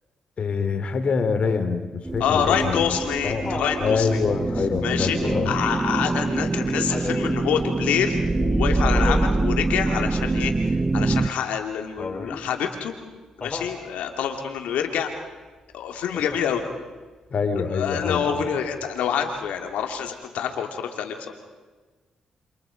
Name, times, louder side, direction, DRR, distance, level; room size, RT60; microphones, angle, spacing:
voice 1, 0.4-3.0 3.2-3.5 3.8-5.5 17.3-18.3, left 5 dB, 60° left, 9 dB, 3.0 m, -25 dB
sound 1, 2.0-11.3, right 2 dB, 25° right, 1.0 m, -25 dB
voice 2, 2.2-4.1 4.8-5.2 5.4-10.5 10.9-12.9 13.4-15.1 15.7-16.6 17.6-21.3, left 8 dB, 80° left, 4 dB, 2.6 m, -26 dB
Laughter, 2.5-3.8 5.2-5.7 6.9-7.3 8.9-9.5 12.0-12.5 13.4-13.8 16.1-16.6 18.0-18.7 20.1-20.2, left 3 dB, 40° left, 4.0 m, -34 dB
28.0 x 26.5 x 5.2 m, 1.3 s
supercardioid pair, 50°, 2 cm